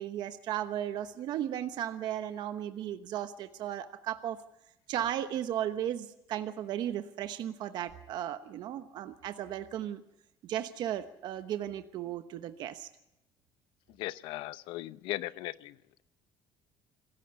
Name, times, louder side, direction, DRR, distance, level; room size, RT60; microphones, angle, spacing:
voice 1, 0.0-4.4 4.9-10.0 10.4-12.9, right 11 dB, 60° right, 9 dB, 1.1 m, -35 dB
voice 2, 14.0-15.8, left 16 dB, 90° left, 16 dB, 0.8 m, -37 dB
26.0 x 15.0 x 6.9 m, 0.90 s
cardioid pair, 150°, 8 cm